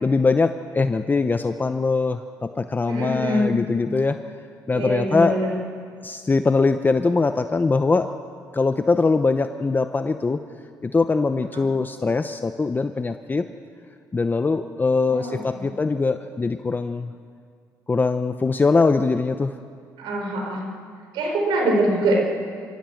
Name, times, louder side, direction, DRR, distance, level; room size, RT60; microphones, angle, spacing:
voice 1, 0.0-4.2 4.7-5.4 6.0-8.1 8.5-10.4 10.8-13.4 14.1-17.1 17.9-19.5, left 4 dB, 25° left, 8 dB, 0.8 m, -22 dB
voice 2, 2.8-3.6 4.7-5.5 11.5-11.7 15.0-15.4 20.0-20.6 21.1-22.2, right 1 dB, 85° right, 1 dB, 4.8 m, -23 dB
27.5 x 15.5 x 7.8 m, 2.2 s
cardioid pair, 90°, 8 cm